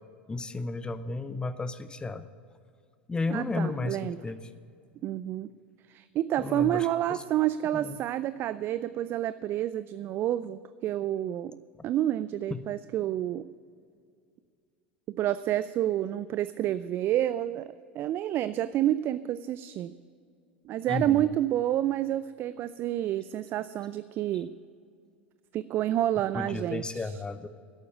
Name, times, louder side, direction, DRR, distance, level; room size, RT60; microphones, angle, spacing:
voice 1, 0.3-2.2 3.1-4.5 6.4-7.2 7.7-8.0 12.5-12.6 20.8-21.2 26.3-27.5, left 3 dB, 15° left, 13 dB, 0.7 m, -33 dB
voice 2, 3.3-4.2 5.0-5.5 5.9-11.6 11.8-13.5 15.1-19.9 20.7-24.5 25.5-27.1, right 12 dB, 35° right, 15 dB, 0.3 m, -29 dB
11.5 x 8.5 x 8.3 m, 2.3 s
figure-of-eight pair, 80°, 6 cm